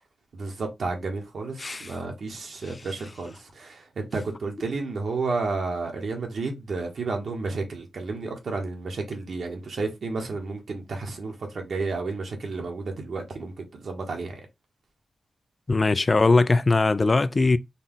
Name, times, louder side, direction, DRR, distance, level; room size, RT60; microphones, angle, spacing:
voice 1, 0.3-14.4, right 3 dB, 75° right, 1.2 m, -31 dB
voice 2, 1.6-1.9 15.7-17.6, left 3 dB, 35° left, 0.4 m, -20 dB
4.1 x 2.4 x 3.7 m
wide cardioid pair, 95°, 0 cm